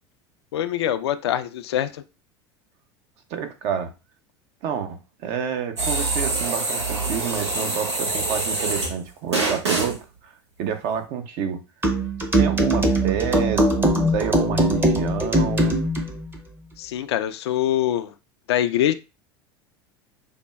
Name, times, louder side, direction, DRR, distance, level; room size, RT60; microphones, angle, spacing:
voice 1, 0.5-2.0 16.8-18.1 18.5-18.9, left 11 dB, 75° left, 0.4 m, -24 dB
voice 2, 3.3-3.9 4.6-10.3 10.6-11.6 12.3-15.8, right 8 dB, 50° right, 0.7 m, -29 dB
sound 1, 5.8-9.0 9.3-10.0, right 3 dB, 90° right, 0.8 m, -25 dB
sound 2, 11.8-16.1, right 1 dB, 15° right, 0.7 m, -21 dB
5.1 x 2.2 x 2.3 m
hypercardioid pair, 80°, 14 cm